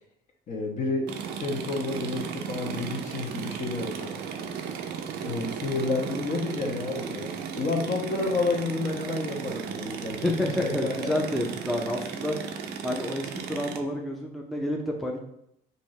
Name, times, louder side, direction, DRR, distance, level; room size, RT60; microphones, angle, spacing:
voice 1, 0.5-4.1 5.2-11.2, left 3 dB, 50° left, 0 dB, 1.0 m, -30 dB
sound 1, 1.1-13.8, right 7 dB, 75° right, 0.5 m, -35 dB
voice 2, 10.6-12.6 12.8-15.2, left 1 dB, ahead, -1 dB, 0.5 m, -30 dB
5.5 x 2.7 x 3.1 m, 0.76 s
cardioid pair, 110°, 17 cm